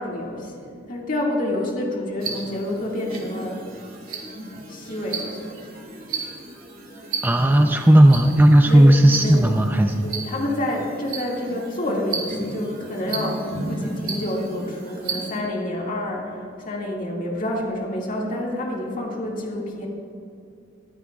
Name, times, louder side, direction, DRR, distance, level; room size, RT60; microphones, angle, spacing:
voice 1, 0.0-3.6 4.7-5.6 6.2-6.3 7.5-7.7 8.6-8.9 9.2-9.6 10.0-19.9, left 1 dB, 40° left, -2 dB, 2.0 m, -28 dB
sound 1, 2.2-15.4, right 3 dB, 45° right, 1.9 m, -34 dB
voice 2, 7.2-10.1, right 1 dB, 10° right, 4 dB, 0.4 m, -14 dB
22.0 x 9.8 x 2.4 m, 2.6 s
head